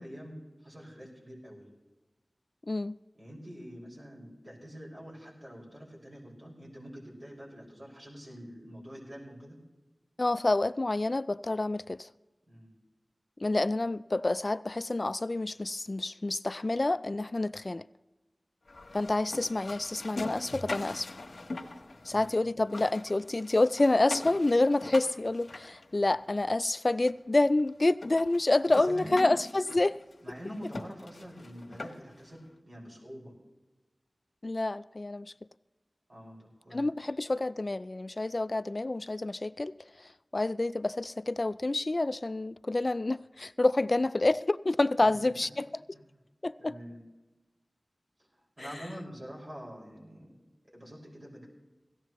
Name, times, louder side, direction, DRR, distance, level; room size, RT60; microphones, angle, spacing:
voice 1, 0.0-1.7 3.1-9.6 12.5-12.8 22.1-22.6 28.7-29.3 29.7-29.8 30.2-33.3 36.1-37.1 45.0-45.3 45.9-46.0 46.6-47.0 48.3-50.4 50.7-51.5, equal, 50° right, 5.5 m, -46 dB
voice 2, 10.2-12.1 13.4-17.9 18.9-21.1 22.1-30.0 34.4-35.3 36.7-39.7 40.3-45.7 46.4-46.7 48.6-48.7, left 2 dB, 50° left, 0.3 m, -28 dB
sound 1, 18.7-22.4 22.6-26.4 27.1-27.2 27.6-27.7 28.0-32.2, left 2 dB, 80° left, 1.2 m, -43 dB
18.0 x 15.0 x 3.1 m
wide cardioid pair, 45°, 0 cm